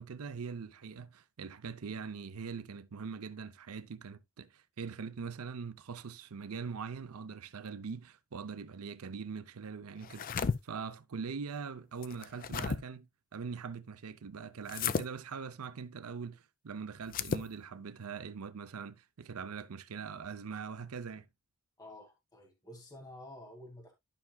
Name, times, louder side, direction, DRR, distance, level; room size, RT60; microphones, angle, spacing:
voice 1, 0.0-13.1 13.3-21.3, right 5 dB, 90° right, 0.6 m, -42 dB
sound 1, 10.0-10.6 12.0-12.8 14.7-15.1 17.0-17.5, left 5 dB, 40° left, 0.5 m, -33 dB
voice 2, 21.8-23.9, left 1 dB, 20° left, 2.1 m, -50 dB
12.0 x 5.8 x 2.2 m
head